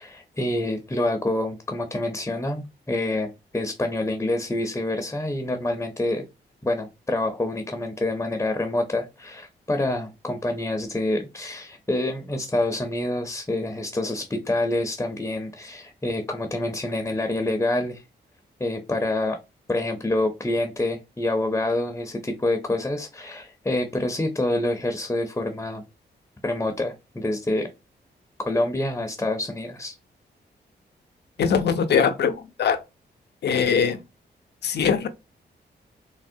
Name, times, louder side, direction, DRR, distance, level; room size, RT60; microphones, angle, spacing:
voice 1, 0.0-6.2 6.6-18.0 18.6-19.4 19.7-25.8 26.4-27.7 28.4-29.9, left 2 dB, 15° left, 0.5 m, -27 dB
voice 2, 31.4-32.8 33.4-34.0 34.6-35.1, left 6 dB, 65° left, 0.5 m, -21 dB
3.5 x 2.0 x 2.6 m
cardioid pair, 70°, 18 cm